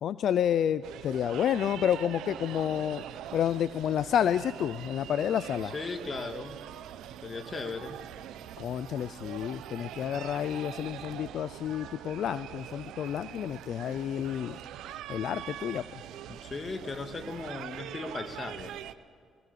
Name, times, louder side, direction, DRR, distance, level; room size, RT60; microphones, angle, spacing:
voice 1, 0.0-3.0 3.3-5.7 8.6-14.6 15.1-16.0, left 9 dB, 70° left, 15 dB, 0.6 m, -30 dB
sound 1, 0.8-18.9, right 11 dB, 85° right, 1.0 m, -43 dB
voice 2, 5.7-6.6 7.2-8.0 16.3-18.7, left 4 dB, 35° left, 8 dB, 2.0 m, -37 dB
sound 2, 11.7-13.1 14.3-15.7, right 2 dB, 5° left, 7.1 m, -60 dB
21.5 x 20.0 x 8.4 m, 2.2 s
cardioid pair, 90°, 0 cm